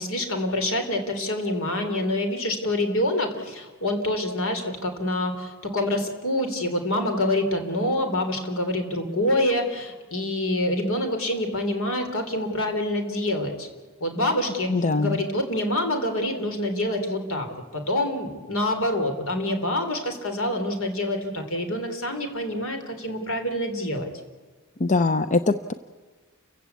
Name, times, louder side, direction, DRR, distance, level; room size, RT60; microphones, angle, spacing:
voice 1, 0.0-13.7 14.0-24.1, left 1 dB, 65° left, 6 dB, 3.9 m, -26 dB
voice 2, 14.7-15.2 24.8-25.7, left 3 dB, 35° left, 11 dB, 0.6 m, -22 dB
30.0 x 15.5 x 8.3 m, 1.4 s
head